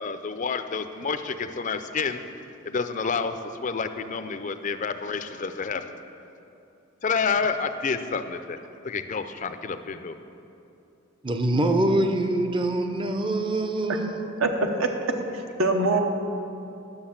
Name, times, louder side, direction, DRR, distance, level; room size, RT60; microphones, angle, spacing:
voice 1, 0.0-2.2 2.6-6.0 7.0-8.6 8.8-10.2, left 5 dB, 40° left, 10 dB, 0.4 m, -29 dB
voice 2, 11.2-14.3, right 1 dB, 25° right, 6 dB, 0.6 m, -24 dB
voice 3, 14.4-14.9 15.3-16.0, right 2 dB, 80° right, 4 dB, 1.1 m, -23 dB
10.5 x 7.0 x 7.2 m, 2.7 s
head